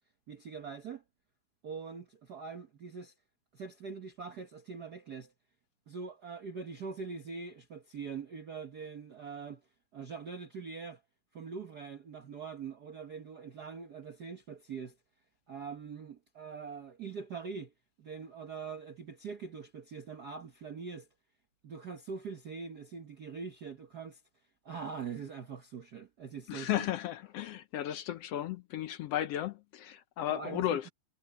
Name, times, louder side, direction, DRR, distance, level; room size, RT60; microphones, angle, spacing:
voice 1, 0.3-1.0 1.6-3.1 3.5-5.3 5.9-9.6 9.9-11.0 11.3-15.0 15.5-17.7 18.0-21.1 21.6-24.2 24.6-26.9 30.3-30.9, right 5 dB, 70° right, 0.9 m, -43 dB
voice 2, 26.5-30.9, left 12 dB, 75° left, 1.5 m, -34 dB
omnidirectional pair, 3.5 m